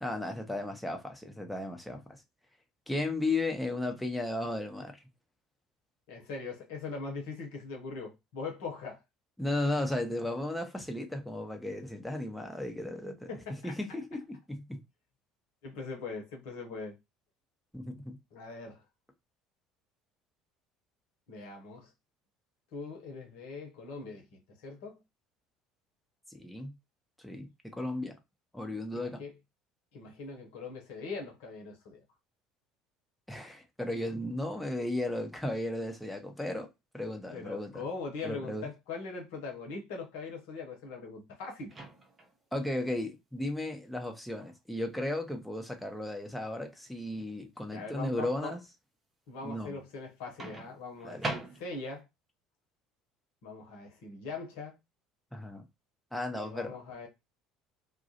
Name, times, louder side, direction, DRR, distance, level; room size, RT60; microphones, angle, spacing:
voice 1, 0.0-2.0 2.9-5.0 9.4-13.3 13.6-14.8 17.7-18.2 26.3-26.7 27.2-28.2 28.5-29.2 33.3-36.7 36.9-37.8 38.2-38.7 42.5-48.6 49.4-49.8 51.0-51.3 55.3-55.6 56.1-56.8, left 1 dB, 5° left, 0.7 m, -35 dB
voice 2, 6.1-9.0 13.3-13.8 15.6-17.0 18.3-18.8 21.3-21.9 22.7-25.0 28.9-29.3 29.9-32.0 37.3-41.7 47.7-48.5 49.3-52.0 53.4-54.8 56.3-57.1, left 4 dB, 65° left, 0.8 m, -41 dB
Microwave oven, 41.7-42.4 44.4-44.6 50.4-52.0, right 2 dB, 25° right, 0.7 m, -40 dB
2.3 x 2.0 x 2.7 m
figure-of-eight pair, 60°, 0 cm